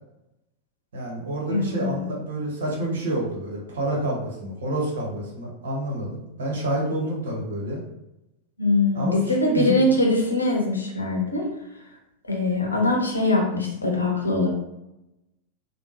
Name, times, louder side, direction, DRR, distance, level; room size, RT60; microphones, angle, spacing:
voice 1, 0.9-7.8 8.9-9.8, right 1 dB, 60° right, -3 dB, 1.0 m, -28 dB
voice 2, 1.5-2.1 8.6-11.5 12.3-14.5, left 2 dB, 80° left, 0 dB, 0.7 m, -22 dB
3.5 x 2.2 x 2.9 m, 0.91 s
figure-of-eight pair, 90°, 0 cm